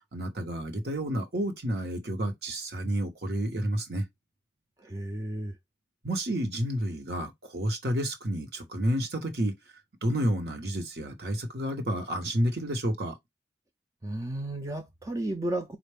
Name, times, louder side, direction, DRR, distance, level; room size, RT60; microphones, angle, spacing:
voice 1, 0.1-4.1 6.0-9.5 10.0-13.2, right 1 dB, 65° right, 1.1 m, -30 dB
voice 2, 4.8-5.6 14.0-15.8, right 1 dB, 20° right, 0.4 m, -33 dB
4.5 x 2.4 x 3.3 m
head